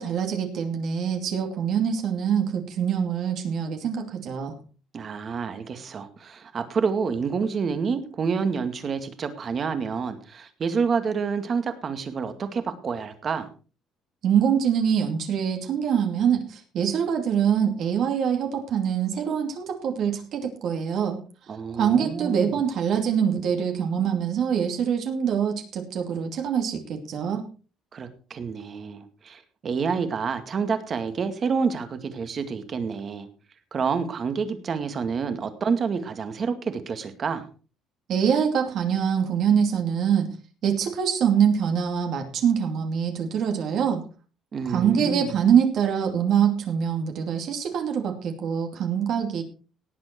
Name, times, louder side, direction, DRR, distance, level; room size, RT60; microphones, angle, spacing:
voice 1, 0.0-4.6 14.2-21.2 21.7-27.4 38.1-40.3 40.6-44.0 44.7-49.4, right 8 dB, 60° right, 4 dB, 2.6 m, -24 dB
voice 2, 4.9-13.5 21.5-22.5 27.9-33.3 33.7-37.5 44.5-45.4, right 5 dB, 35° right, 9 dB, 2.1 m, -28 dB
18.0 x 7.9 x 4.5 m, 0.36 s
cardioid pair, 135°, 0 cm